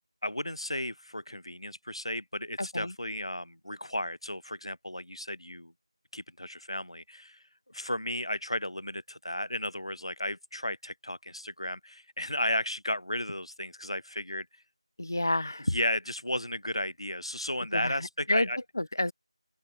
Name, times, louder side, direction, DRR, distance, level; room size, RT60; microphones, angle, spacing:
voice 1, 0.2-5.7 6.1-14.5 15.7-18.6, left 1 dB, 70° left, 0.7 m, -34 dB
voice 2, 2.6-2.9 15.0-15.7 17.7-18.5 18.8-19.1, left 1 dB, 40° left, 0.4 m, -29 dB
open air
figure-of-eight pair, 175°, 3 cm